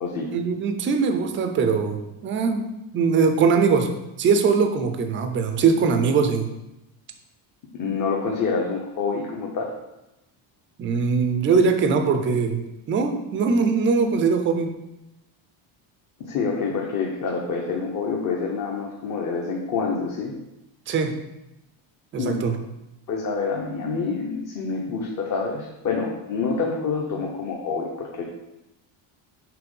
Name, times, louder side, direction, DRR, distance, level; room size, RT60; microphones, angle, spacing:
voice 1, 0.3-2.6 2.9-3.9 4.2-6.5 10.8-14.7 20.9-21.1 22.1-22.6, right 5 dB, 30° right, 6 dB, 0.3 m, -21 dB
voice 2, 7.7-9.7 16.2-20.3 22.2-22.5 23.1-28.3, left 4 dB, 40° left, -1 dB, 0.7 m, -27 dB
5.9 x 3.4 x 5.2 m, 0.93 s
cardioid pair, 170°, 50 cm